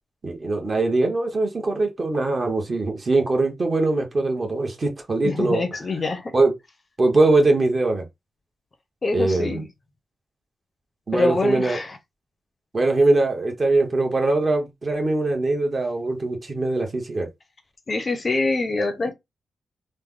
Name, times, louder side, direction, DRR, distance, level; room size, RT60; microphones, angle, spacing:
voice 1, 0.2-5.6 6.3-6.5 7.0-8.0 9.1-9.7 11.1-11.8 12.7-17.3, right 2 dB, 35° right, 1.1 m, -22 dB
voice 2, 5.2-6.3 9.0-9.6 11.1-12.0 17.9-19.1, left 3 dB, 35° left, 0.6 m, -25 dB
3.2 x 2.1 x 3.6 m
wide cardioid pair, 125°, 0 cm